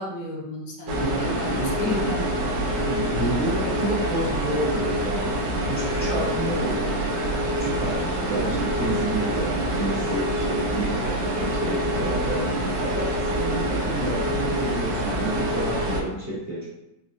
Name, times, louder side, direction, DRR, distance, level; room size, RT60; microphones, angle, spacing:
voice 1, 0.0-2.3, left 2 dB, 75° left, -1 dB, 1.2 m, -32 dB
sound 1, 0.9-16.0, right 1 dB, 85° right, 1.3 m, -26 dB
voice 2, 1.0-1.7 2.8-6.9 7.6-16.7, right 1 dB, 35° right, -9 dB, 1.1 m, -30 dB
4.3 x 2.1 x 2.6 m, 0.93 s
omnidirectional pair, 2.0 m